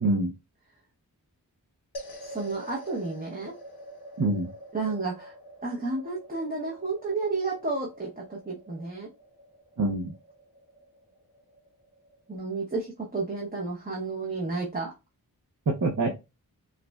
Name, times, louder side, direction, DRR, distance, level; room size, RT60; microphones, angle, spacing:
voice 1, 0.0-0.3 4.2-4.5 9.8-10.1 15.7-16.2, right 2 dB, 55° right, 1 dB, 0.7 m, -25 dB
sound 1, 1.9-12.4, right 1 dB, 75° left, 0.8 m, -46 dB
voice 2, 2.2-3.5 4.7-5.3 5.6-9.1 12.3-14.9, right 3 dB, 25° right, -2 dB, 0.8 m, -31 dB
4.8 x 2.2 x 2.2 m, 0.26 s
wide cardioid pair, 50°, 38 cm